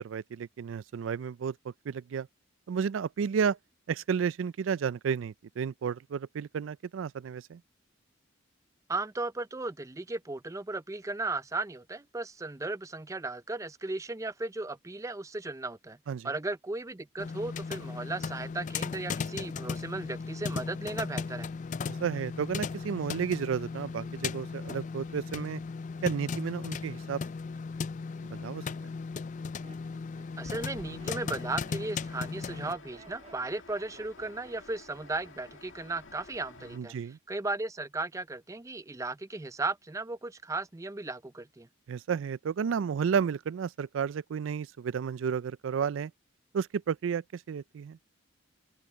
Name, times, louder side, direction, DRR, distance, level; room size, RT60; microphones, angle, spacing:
voice 1, 0.0-2.3 2.7-3.6 3.9-7.6 16.1-16.3 21.9-25.6 26.0-27.2 28.3-28.6 36.7-37.2 41.9-46.1 46.5-48.0, right 7 dB, 80° right, 0.4 m, -32 dB
voice 2, 8.9-16.0 16.2-21.5 30.4-36.9 37.3-41.7, right 2 dB, 15° right, 0.5 m, -36 dB
sound 1, 17.2-32.7, left 5 dB, 40° left, 0.4 m, -37 dB
Laughter, 29.3-35.9 36.1-36.6, right 2 dB, 35° right, 1.9 m, -56 dB
sound 2, 30.4-36.8, left 3 dB, 80° left, 2.2 m, -52 dB
open air
head